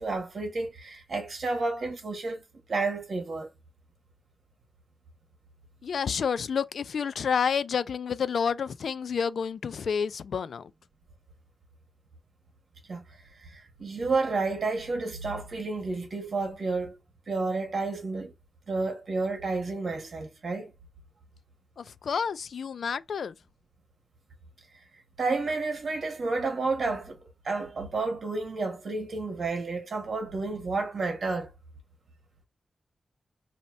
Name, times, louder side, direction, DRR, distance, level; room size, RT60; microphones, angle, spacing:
voice 1, 0.0-2.4 2.7-3.5 12.9-13.0 13.4-17.0 17.3-18.3 18.7-20.7 25.2-27.2 27.4-31.5, right 3 dB, 55° right, 1.3 m, -30 dB
voice 2, 5.8-10.7 21.8-23.3, left 6 dB, 85° left, 0.3 m, -29 dB
3.1 x 2.8 x 4.2 m
wide cardioid pair, 135°, 0 cm